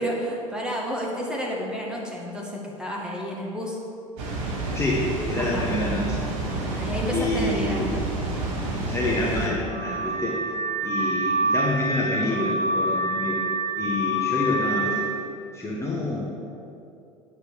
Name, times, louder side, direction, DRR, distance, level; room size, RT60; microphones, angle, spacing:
voice 1, 0.0-3.8 5.4-5.7 6.7-7.9, equal, 5° right, -3 dB, 2.0 m, -31 dB
Water, 4.2-9.5, right 2 dB, 65° right, 1.4 m, -29 dB
voice 2, 4.7-6.2 7.1-8.0 8.7-10.4 10.8-13.4 13.7-15.1 15.5-16.3, left 1 dB, 15° left, -5 dB, 1.6 m, -27 dB
Car / Alarm, 9.7-15.1, right 1 dB, 30° right, 2.3 m, -26 dB
8.9 x 5.2 x 6.4 m, 2.6 s
figure-of-eight pair, 70°, 18 cm